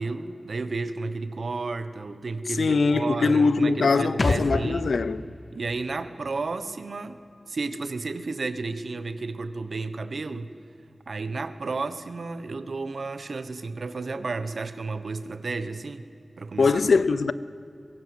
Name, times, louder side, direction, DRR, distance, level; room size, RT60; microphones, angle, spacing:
voice 1, 0.0-4.9 5.5-7.2 7.5-10.5 11.1-16.0 16.4-16.8, right 3 dB, 75° right, 1.3 m, -32 dB
voice 2, 2.6-5.3 16.6-17.3, left 4 dB, 85° left, 0.7 m, -22 dB
sound 1, 4.2-7.7 8.0-8.1, left 2 dB, 45° left, 1.5 m, -32 dB
23.5 x 22.0 x 8.0 m
wide cardioid pair, 60°, 0 cm